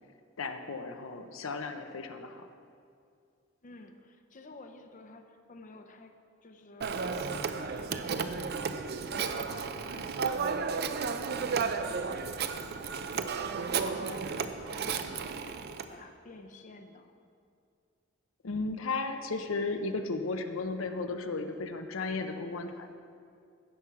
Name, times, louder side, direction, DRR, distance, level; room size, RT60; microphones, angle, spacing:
voice 1, 0.4-2.5 18.4-22.9, left 3 dB, 85° left, 7 dB, 0.7 m, -35 dB
voice 2, 3.6-6.1 6.4-13.4 13.7-15.6 15.9-17.1, left 2 dB, 40° left, 6 dB, 0.6 m, -51 dB
Telephone, 6.8-15.9, right 5 dB, 55° right, 0.5 m, -33 dB
15.5 x 5.9 x 4.8 m, 2.3 s
head